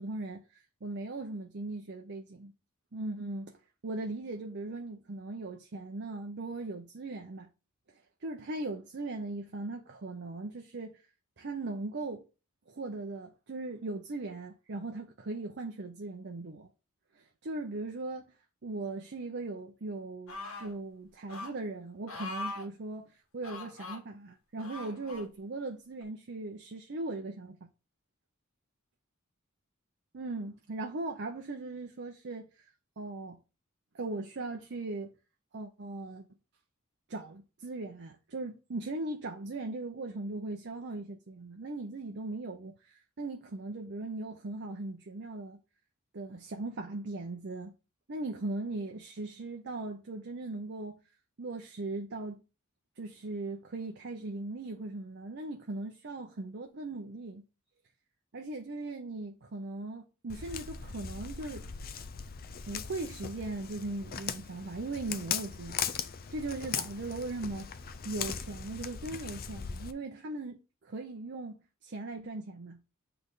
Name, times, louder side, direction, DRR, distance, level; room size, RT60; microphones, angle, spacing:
voice 1, 0.0-2.5 2.9-3.5 3.8-7.5 8.2-11.0 11.4-12.2 12.7-16.7 17.1-18.3 18.6-27.6 30.1-32.6 33.0-33.4 33.9-35.1 35.5-36.2 37.1-45.6 46.1-47.7 48.1-51.0 51.4-52.4 53.0-57.4 58.3-61.7 62.7-65.8 66.3-67.7 68.0-72.8, right 2 dB, 55° right, 0.7 m, -39 dB
sound 1, 20.3-20.7 21.3-21.5 22.1-22.7 23.4-24.0 24.6-25.3 26.0-26.1, left 2 dB, 75° left, 1.5 m, -41 dB
Walk footsteps, 60.3-69.9, left 7 dB, 45° left, 0.5 m, -39 dB
8.5 x 3.4 x 4.0 m
head